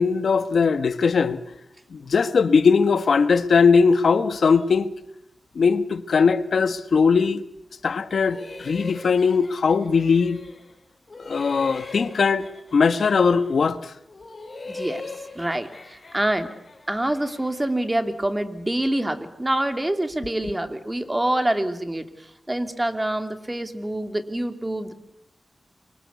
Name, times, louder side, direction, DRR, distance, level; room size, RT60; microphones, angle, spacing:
voice 1, 0.0-1.4 1.9-4.9 5.5-7.4 7.8-10.4 11.2-13.9, left 5 dB, 80° left, 1.3 m, -20 dB
sound 1, 8.1-10.8 11.1-13.7 14.1-17.8, left 3 dB, 45° left, 7.6 m, -41 dB
voice 2, 14.7-15.0 15.3-16.5 16.9-24.9, right 1 dB, 15° right, 2.7 m, -26 dB
28.5 x 24.5 x 8.2 m
wide cardioid pair, 70°, 0 cm